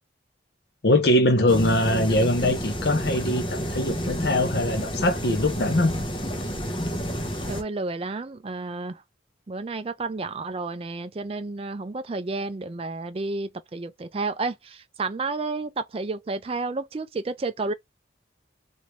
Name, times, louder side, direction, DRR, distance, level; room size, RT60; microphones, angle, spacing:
voice 1, 0.8-6.0, left 1 dB, 60° left, 0.7 m, -22 dB
sound 1, 1.5-7.6, equal, 25° left, 0.7 m, -29 dB
voice 2, 7.5-9.0 9.5-17.7, right 3 dB, 30° right, 0.4 m, -31 dB
3.0 x 2.6 x 3.0 m
head